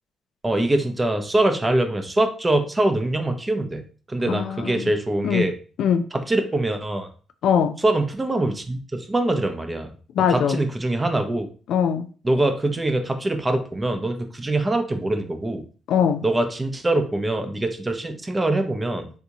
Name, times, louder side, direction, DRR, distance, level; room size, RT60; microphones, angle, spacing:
voice 1, 0.4-3.8 4.1-5.5 6.1-7.1 7.8-9.9 10.3-11.5 12.2-15.6 16.2-19.1, right 2 dB, 20° right, 7 dB, 0.6 m, -23 dB
voice 2, 4.3-4.9 5.2-5.5 5.8-6.1 7.4-7.8 10.1-10.6 11.7-12.1 15.9-16.2, left 8 dB, 75° left, 9 dB, 0.3 m, -21 dB
3.5 x 2.7 x 2.8 m, 0.40 s
cardioid pair, 90°, 0 cm